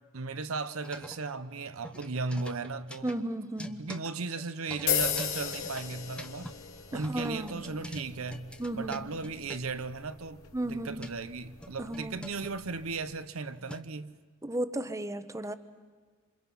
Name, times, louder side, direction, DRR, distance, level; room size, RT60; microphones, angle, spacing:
voice 1, 0.1-3.1 3.8-6.5 6.9-14.2, right 3 dB, 75° right, 0.8 m, -36 dB
sound 1, 0.7-1.5 1.8-6.5 7.0-9.8 10.7-11.1 11.6-14.0, equal, 5° left, 1.0 m, -45 dB
voice 2, 3.0-3.9 6.9-7.7 8.6-9.1 10.5-11.1 11.8-12.3 14.4-15.5, right 1 dB, 15° right, 0.9 m, -34 dB
sound 2, 4.9-13.0, left 8 dB, 80° left, 2.9 m, -37 dB
27.5 x 26.5 x 5.8 m
head